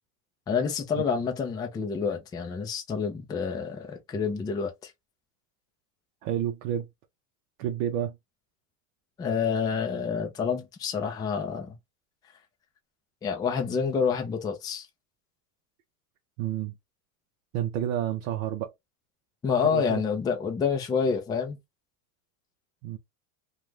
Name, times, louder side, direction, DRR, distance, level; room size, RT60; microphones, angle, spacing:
voice 1, 0.5-4.9 9.2-11.8 13.2-14.9 19.4-21.6, left 6 dB, 10° left, 0.3 m, -28 dB
voice 2, 6.2-6.9 7.6-8.2 16.4-16.7 17.5-18.7 19.6-20.0 22.8-23.0, right 10 dB, 60° right, 0.6 m, -30 dB
2.5 x 2.3 x 3.1 m
supercardioid pair, 125°, 45 cm